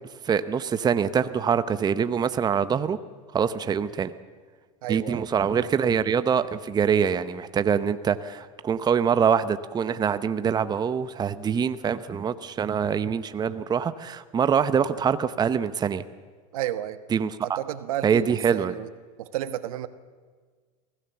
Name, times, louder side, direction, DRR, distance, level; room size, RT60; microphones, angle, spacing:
voice 1, 0.3-3.0 3.3-4.1 4.9-16.0 17.1-17.6 18.0-18.7, right 7 dB, 25° right, 12 dB, 0.8 m, -24 dB
voice 2, 4.8-5.3 16.5-17.0 17.4-18.9 19.2-19.9, right 13 dB, 80° right, 12 dB, 1.2 m, -32 dB
23.5 x 16.5 x 7.1 m, 1.5 s
supercardioid pair, 115°, 18 cm